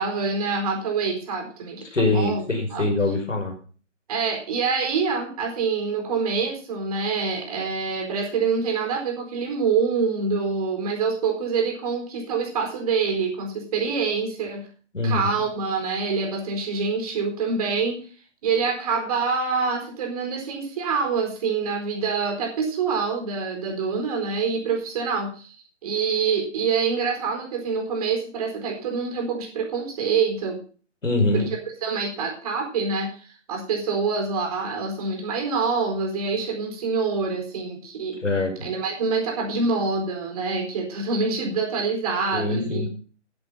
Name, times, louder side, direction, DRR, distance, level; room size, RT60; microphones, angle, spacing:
voice 1, 0.0-2.4 2.7-2.9 4.1-14.7 15.0-18.1 18.4-25.6 25.8-30.6 31.3-31.4 31.8-38.2 38.6-42.9, right 5 dB, 30° right, 2 dB, 4.3 m, -26 dB
voice 2, 1.9-3.5 14.9-15.3 31.0-31.5 38.2-38.5 42.3-42.9, left 2 dB, 85° left, 4 dB, 5.1 m, -23 dB
10.5 x 10.0 x 5.6 m, 0.40 s
figure-of-eight pair, 155°, 36 cm